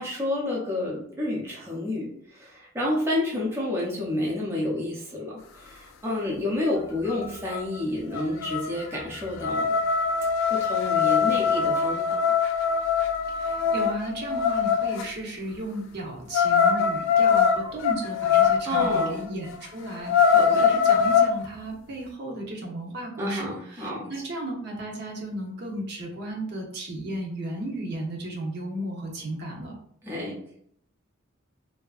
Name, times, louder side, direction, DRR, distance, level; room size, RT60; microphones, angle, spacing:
voice 1, 0.0-9.8 10.5-12.2 18.6-19.2 20.3-20.7 23.2-24.1 30.0-30.4, left 1 dB, 10° right, -5 dB, 0.4 m, -30 dB
sound 1, 7.1-7.2 7.5-7.8 8.1-15.0 16.3-19.1 19.5-19.6 20.0-21.3, left 6 dB, 75° left, 0.3 m, -22 dB
voice 2, 13.4-29.8, right 1 dB, 55° right, 0 dB, 0.6 m, -35 dB
2.6 x 2.4 x 2.3 m, 0.67 s
head